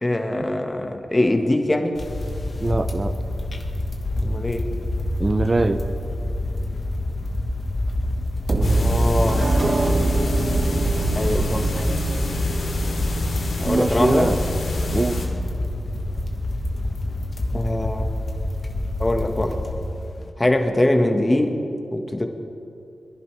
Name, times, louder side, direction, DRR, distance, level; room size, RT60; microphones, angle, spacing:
voice 1, 0.0-1.9 4.2-4.6 8.6-9.6 11.1-11.7 13.6-14.3 17.5-18.1 19.0-19.6 20.4-21.5 21.9-22.3, left 1 dB, 25° left, 4 dB, 1.5 m, -22 dB
sound 1, 1.9-20.3, left 1 dB, 55° left, 1.5 m, -27 dB
voice 2, 2.6-3.2 5.2-5.8 13.6-14.4 14.9-15.2, right 2 dB, 40° right, 8 dB, 0.7 m, -22 dB
sound 2, 8.5-14.5, right 2 dB, 55° right, 1.1 m, -24 dB
sound 3, 8.6-15.3, left 2 dB, 85° left, 2.6 m, -29 dB
22.5 x 11.0 x 3.4 m, 2.7 s
cardioid pair, 50°, 0 cm